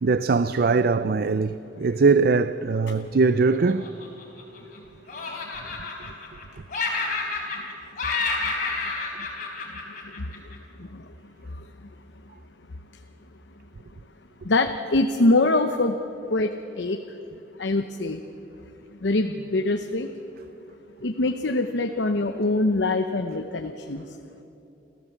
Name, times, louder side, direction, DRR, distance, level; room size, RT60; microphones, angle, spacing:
voice 1, 0.0-4.0 5.2-5.3, right 4 dB, 55° right, 0.4 m, -21 dB
Laughter, 3.5-4.8 5.1-6.4 6.7-7.7 8.0-10.6, left 3 dB, 45° left, 4.3 m, -30 dB
voice 2, 14.5-16.0 16.3-16.5 16.8-17.0 17.6-18.2 19.0-20.1 21.0-24.0, left 2 dB, 75° left, 0.9 m, -23 dB
29.0 x 14.0 x 7.3 m
head